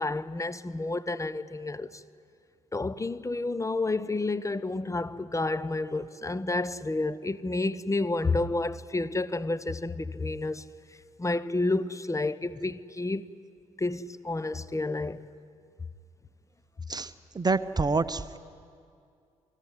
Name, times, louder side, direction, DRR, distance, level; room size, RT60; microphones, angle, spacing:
voice 1, 0.0-2.0 2.7-10.6 11.2-13.3 13.8-15.3, left 2 dB, 20° left, 1.0 m, -30 dB
voice 2, 16.9-18.4, right 3 dB, 25° right, 0.9 m, -28 dB
28.5 x 20.5 x 9.7 m
figure-of-eight pair, 45°, 17 cm